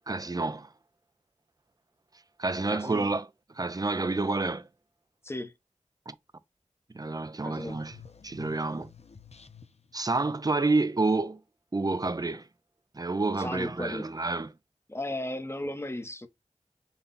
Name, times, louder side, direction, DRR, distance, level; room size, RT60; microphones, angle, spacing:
voice 1, 0.1-0.7 2.4-3.3 3.5-4.7 6.1-6.2 6.9-8.0 8.2-8.9 9.9-11.4 11.7-12.5 12.9-14.5, right 3 dB, 30° right, 0.5 m, -29 dB
voice 2, 2.7-3.1 5.2-5.5 7.4-7.8 13.4-14.1 14.9-16.3, left 1 dB, 20° left, 0.8 m, -35 dB
sound 1, 7.7-10.0, left 6 dB, 55° left, 0.6 m, -51 dB
5.5 x 2.3 x 3.9 m
wide cardioid pair, 45°, 13 cm